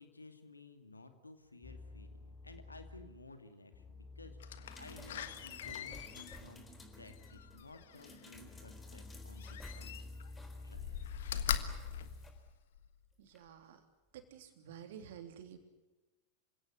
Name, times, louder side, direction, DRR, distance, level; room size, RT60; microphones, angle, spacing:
voice 1, 0.0-6.7 7.0-9.9 10.6-10.9, left 2 dB, 80° left, 8 dB, 2.4 m, -55 dB
sound 1, 1.6-3.3 3.7-7.9 8.3-12.5, left 2 dB, 35° left, 2.6 m, -52 dB
Slam, 4.4-8.3 9.4-10.3 10.7-13.0 13.5-13.6, left 9 dB, 60° left, 1.5 m, -41 dB
water faucet is coughing, 4.6-12.3 13.3-13.4, left 1 dB, 15° left, 4.0 m, -56 dB
voice 2, 13.2-13.8 14.1-15.6, right 9 dB, 55° right, 7 dB, 3.3 m, -51 dB
27.0 x 17.0 x 9.6 m, 1.1 s
figure-of-eight pair, 90°, 0 cm